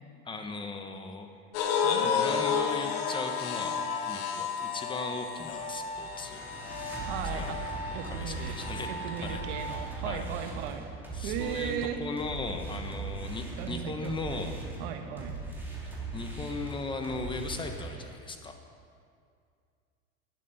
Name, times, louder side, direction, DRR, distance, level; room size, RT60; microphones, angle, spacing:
voice 1, 0.2-1.3 2.0-6.5 7.3-7.6 8.0-8.9 9.2-9.4 10.0-10.3 11.1-14.6 16.1-18.6, left 3 dB, 15° left, 5 dB, 1.1 m, -37 dB
sound 1, 1.5-9.9, left 6 dB, 80° left, 1.2 m, -32 dB
voice 2, 1.7-2.9 7.1-7.5 7.9-8.6 8.9-10.8 11.2-12.0 13.6-15.3, right 8 dB, 70° right, 7 dB, 1.3 m, -37 dB
sound 2, 5.4-18.0, right 3 dB, 5° right, 2.9 m, -39 dB
12.0 x 9.8 x 5.7 m, 2.3 s
supercardioid pair, 120°, 29 cm